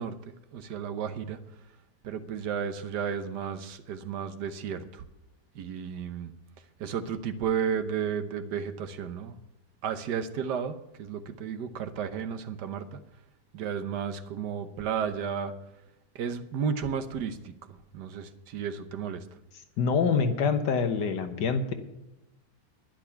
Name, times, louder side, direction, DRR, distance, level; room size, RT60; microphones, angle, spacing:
voice 1, 0.0-1.4 2.0-5.0 5.5-6.3 6.8-9.4 9.8-13.0 13.5-15.5 16.1-19.2, right 7 dB, 75° right, 10 dB, 1.5 m, -33 dB
voice 2, 19.8-21.7, left 5 dB, 85° left, 7 dB, 1.8 m, -25 dB
11.5 x 10.5 x 5.8 m, 0.97 s
omnidirectional pair, 1.8 m